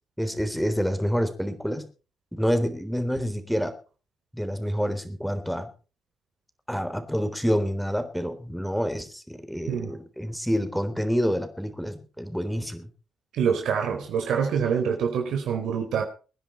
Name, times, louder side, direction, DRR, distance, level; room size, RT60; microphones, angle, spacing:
voice 1, 0.2-1.9 2.3-3.8 4.3-5.7 6.7-12.9, equal, ahead, 3.7 m, -27 dB
voice 2, 13.3-16.0, right 7 dB, 75° right, 4.2 m, -25 dB
24.0 x 10.5 x 4.5 m
cardioid pair, 90°, 0 cm